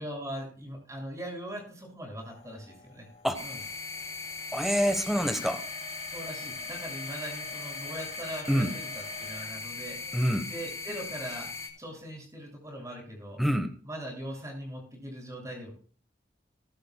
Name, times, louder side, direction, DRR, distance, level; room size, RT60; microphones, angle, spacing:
voice 1, 0.0-3.1 3.4-3.6 6.1-10.0 10.4-11.5 11.8-13.4 13.8-15.7, equal, 20° right, 1 dB, 6.5 m, -40 dB
sound 1, 2.2-9.6 10.0-10.4 11.0-11.1 11.8-11.9, left 1 dB, 35° left, 5.9 m, -48 dB
sound 2, 3.3-11.7, left 4 dB, 15° left, 3.5 m, -39 dB
voice 2, 4.5-5.6 8.5-8.7 10.1-10.5 13.4-13.7, equal, ahead, 7 dB, 1.1 m, -26 dB
21.5 x 11.5 x 2.3 m, 0.43 s
head